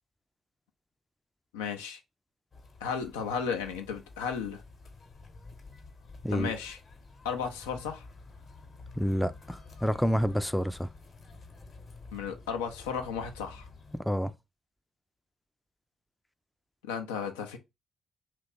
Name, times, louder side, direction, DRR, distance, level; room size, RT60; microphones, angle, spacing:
voice 1, 1.5-2.0 2.8-4.6 6.3-6.8 7.2-8.0 12.1-13.7 16.8-17.6, left 6 dB, 80° left, 0.4 m, -34 dB
sound 1, 2.5-14.0, left 3 dB, 50° left, 1.0 m, -50 dB
voice 2, 9.0-10.9 13.9-14.3, equal, ahead, 0.4 m, -28 dB
2.8 x 2.4 x 3.7 m
hypercardioid pair, 40°, 0 cm